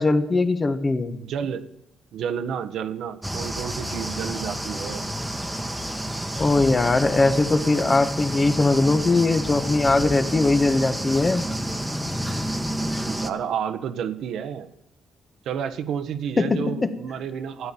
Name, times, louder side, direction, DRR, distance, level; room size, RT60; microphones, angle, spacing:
voice 1, 0.0-1.1 6.4-11.5 16.4-16.9, left 3 dB, 30° left, 9 dB, 1.4 m, -20 dB
voice 2, 1.0-1.6 2.1-5.1 13.1-14.7 15.4-17.7, right 8 dB, 75° right, 10 dB, 1.2 m, -30 dB
sound 1, 3.2-13.3, right 1 dB, 5° right, 1.4 m, -30 dB
12.5 x 9.6 x 8.6 m, 0.82 s
cardioid pair, 90°, 0 cm